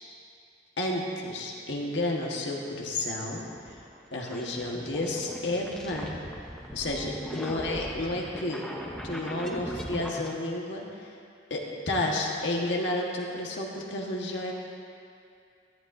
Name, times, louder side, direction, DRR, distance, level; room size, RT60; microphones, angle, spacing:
voice 1, 0.8-3.8 4.1-6.2 6.7-8.7 9.0-11.1 11.5-14.5, left 1 dB, 75° left, -1 dB, 1.5 m, -31 dB
sound 1, 2.9-10.3, equal, 5° left, 0.9 m, -39 dB
17.0 x 11.5 x 2.7 m, 2.4 s
head